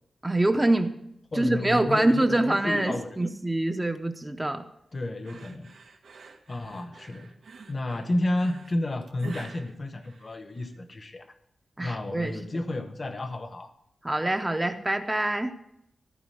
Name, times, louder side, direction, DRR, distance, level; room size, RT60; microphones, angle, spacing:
voice 1, 0.2-0.9 1.4-4.6 11.8-12.4 14.0-15.5, right 1 dB, 15° right, 6 dB, 0.7 m, -25 dB
voice 2, 1.3-3.2 4.9-5.7 6.5-7.3 7.7-11.2 11.8-13.7, left 1 dB, 30° left, 8 dB, 1.0 m, -31 dB
sound 1, 5.2-10.8, right 4 dB, 90° right, 1.4 m, -48 dB
15.0 x 5.0 x 7.8 m, 0.76 s
wide cardioid pair, 160°, 0 cm